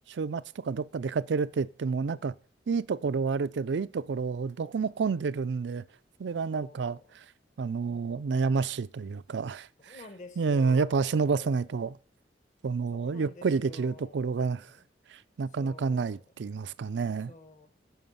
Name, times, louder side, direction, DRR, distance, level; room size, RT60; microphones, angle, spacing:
voice 1, 0.1-2.3 2.7-5.8 6.2-7.2 7.6-10.0 10.4-12.0 12.6-14.7 15.1-17.3, right 5 dB, 80° right, 0.4 m, -29 dB
voice 2, 6.5-7.0 7.9-8.3 9.8-11.6 12.9-14.8 15.6-16.2 17.3-17.7, left 2 dB, 45° left, 1.4 m, -50 dB
9.3 x 5.8 x 7.0 m
head